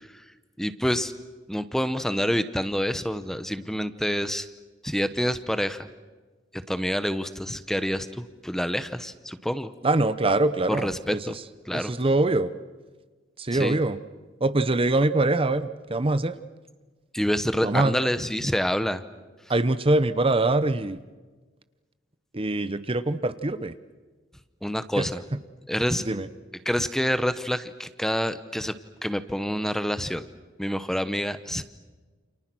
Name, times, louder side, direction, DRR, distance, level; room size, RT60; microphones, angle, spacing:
voice 1, 0.6-1.1 1.5-4.5 4.8-5.9 6.5-9.7 10.7-11.4 11.7-11.9 13.5-13.8 17.1-19.0 24.6-25.2 25.7-26.0 26.6-28.7 29.0-30.2 30.6-31.6, equal, ahead, 12 dB, 0.9 m, -27 dB
voice 2, 9.8-11.2 11.7-12.5 13.4-14.0 14.4-16.3 17.6-17.9 19.5-21.0 22.3-23.7 25.0-25.1 26.0-26.3, right 2 dB, 30° right, 13 dB, 0.9 m, -23 dB
29.0 x 28.0 x 6.2 m, 1.3 s
head